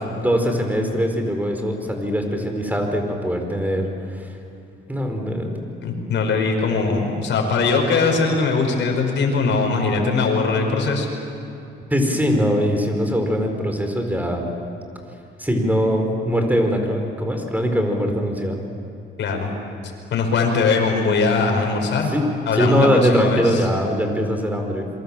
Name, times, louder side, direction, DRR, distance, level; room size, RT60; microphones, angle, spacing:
voice 1, 0.2-4.3 4.9-5.6 11.9-14.5 15.4-18.6 21.4-21.5 22.1-22.2 22.5-24.9, equal, 10° right, 4 dB, 4.7 m, -22 dB
voice 2, 5.8-11.1 19.2-19.5 20.1-22.1 22.5-23.6, left 4 dB, 65° left, 2 dB, 5.7 m, -20 dB
27.5 x 23.5 x 7.5 m, 2.7 s
cardioid pair, 90°, 20 cm